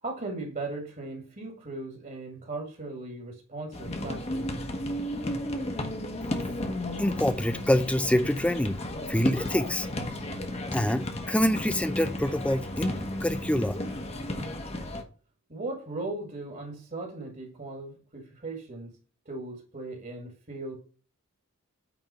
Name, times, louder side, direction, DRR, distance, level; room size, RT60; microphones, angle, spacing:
voice 1, 0.0-4.6 15.5-18.9 19.3-20.7, right 2 dB, 40° right, 1.9 m, -38 dB
sound 1, 3.7-15.0, left 1 dB, 30° left, 1.1 m, -33 dB
voice 2, 7.0-8.8 9.1-9.9 10.7-13.8, left 1 dB, 5° left, 0.5 m, -26 dB
9.0 x 3.6 x 5.6 m
head